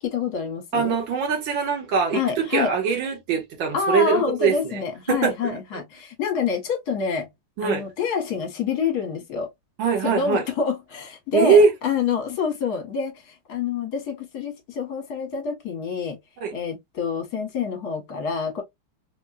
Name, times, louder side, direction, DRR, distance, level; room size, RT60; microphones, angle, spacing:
voice 1, 0.0-1.0 2.1-2.7 3.7-7.3 7.6-9.5 10.0-16.2 16.5-18.6, left 6 dB, 55° left, 1.6 m, -27 dB
voice 2, 0.7-4.8 5.1-5.6 7.6-7.8 9.8-10.4 11.3-11.7 16.4-16.5, right 5 dB, 70° right, 2.0 m, -22 dB
4.3 x 2.3 x 2.3 m
omnidirectional pair, 2.3 m